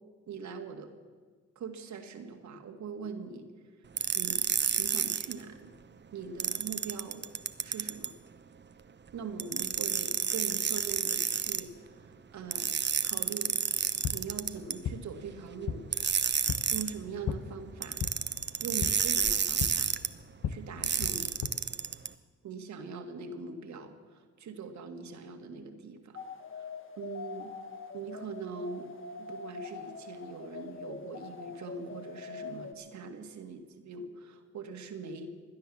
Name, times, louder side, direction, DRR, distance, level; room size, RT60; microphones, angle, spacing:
voice 1, 0.3-0.9 1.6-3.5 4.1-4.4 4.8-5.7 6.1-7.2 7.6-8.1 9.1-12.8 13.0-13.6 14.1-15.9 16.7-18.0 18.6-19.9 20.5-21.3 22.4-26.2 26.5-26.7 27.0-27.5 27.9-28.9 29.2-35.3, right 5 dB, 65° right, 5 dB, 1.8 m, -42 dB
sound 1, 4.0-5.3 6.4-8.1 9.4-11.6 12.5-14.7 15.9-16.9 17.8-20.1 20.8-22.1, right 7 dB, 35° right, 0.8 m, -30 dB
sound 2, 13.7-21.5, left 7 dB, 60° left, 0.9 m, -38 dB
sound 3, 26.1-32.7, left 5 dB, 40° left, 1.6 m, -44 dB
17.0 x 10.5 x 7.1 m, 1.5 s
supercardioid pair, 60°, 31 cm